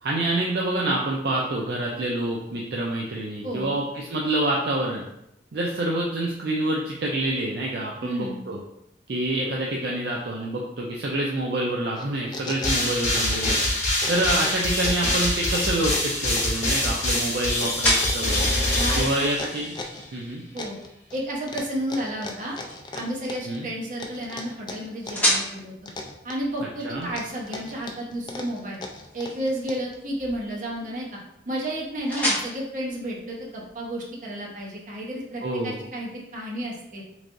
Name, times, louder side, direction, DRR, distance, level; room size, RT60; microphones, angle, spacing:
voice 1, 0.0-5.0 5.5-8.6 9.1-13.6 14.1-18.4 19.0-19.7 20.1-20.4 23.5-23.7 26.8-27.1 35.4-35.8, right 1 dB, 60° right, -2 dB, 0.4 m, -27 dB
voice 2, 3.4-3.8 8.0-8.4 18.8-19.3 20.5-20.8 21.1-22.6 22.9-25.7 26.2-28.8 29.1-31.2 31.5-37.0, right 1 dB, 45° right, -3 dB, 0.8 m, -32 dB
sound 1, 12.0-13.7 13.9-15.1 15.5-20.1 20.6-21.2 21.5-23.6 24.0-25.3 25.6-26.6 27.0-29.9, left 3 dB, 25° left, 0.3 m, -37 dB
sound 2, 12.6-19.9, left 1 dB, 40° left, 1.2 m, -25 dB
sound 3, 15.1-33.9, equal, 10° left, 0.8 m, -34 dB
3.4 x 3.2 x 2.5 m, 0.81 s
head